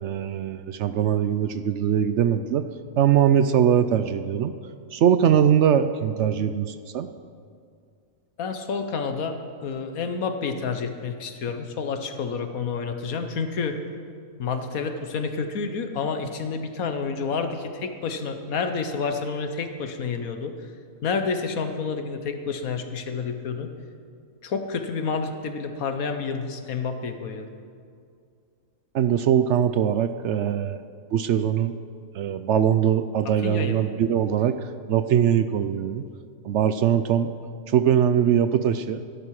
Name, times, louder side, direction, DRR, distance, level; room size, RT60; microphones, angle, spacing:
voice 1, 0.0-2.6 3.0-4.5 4.9-7.1 28.9-30.8 31.1-31.7 32.1-34.6 34.9-36.0 36.4-37.3 37.7-39.0, right 9 dB, 65° right, 11 dB, 0.8 m, -21 dB
voice 2, 8.4-13.8 14.4-20.5 21.0-23.7 24.4-27.5 33.4-33.8, left 5 dB, 80° left, 7 dB, 1.5 m, -29 dB
17.0 x 12.0 x 4.8 m, 2.2 s
omnidirectional pair, 1.5 m